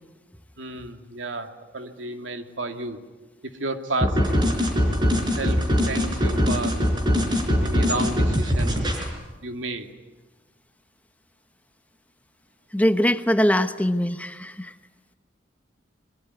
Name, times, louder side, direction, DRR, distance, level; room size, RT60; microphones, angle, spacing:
voice 1, 0.6-3.0 3.6-4.2 5.4-6.8 7.6-8.7 9.4-9.9, right 2 dB, 85° right, 6 dB, 2.5 m, -31 dB
sound 1, 4.0-9.1, equal, 25° right, 4.7 m, -22 dB
voice 2, 12.7-14.7, equal, 10° left, 9 dB, 1.0 m, -22 dB
26.0 x 23.5 x 9.7 m, 1.2 s
head